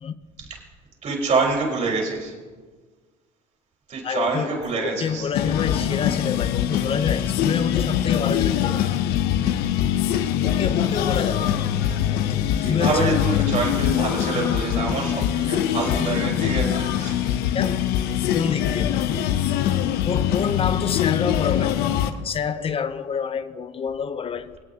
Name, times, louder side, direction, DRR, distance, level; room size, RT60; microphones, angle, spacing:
voice 1, 1.0-2.3 3.9-5.3 11.8-12.0 12.6-17.4, right 4 dB, 45° right, 4.5 m, -26 dB
voice 2, 4.0-9.0 10.4-11.7 12.3-13.2 17.5-17.9 18.3-19.1 20.0-21.9 22.2-24.6, left 6 dB, 35° left, 0.6 m, -27 dB
sound 1, 5.3-22.1, left 10 dB, 75° left, 0.7 m, -23 dB
25.0 x 9.0 x 2.8 m
supercardioid pair, 100°, 16 cm